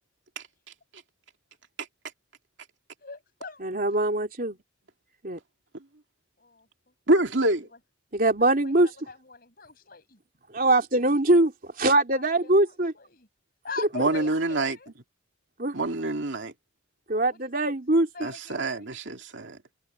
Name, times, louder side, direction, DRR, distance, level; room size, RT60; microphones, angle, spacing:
voice 1, 3.0-3.6 6.4-6.7 7.4-7.6 8.4-10.2 12.1-13.3 13.6-14.9 18.1-18.9, left 4 dB, 50° left, 5.8 m, -42 dB
voice 2, 3.6-4.6 5.2-5.4 8.1-8.9 10.5-12.9 14.0-14.1 15.6-15.7 17.1-18.3, right 2 dB, 45° right, 3.3 m, -23 dB
voice 3, 7.1-7.7 13.9-14.8 15.7-16.5 18.2-19.6, right 2 dB, 70° right, 2.4 m, -26 dB
head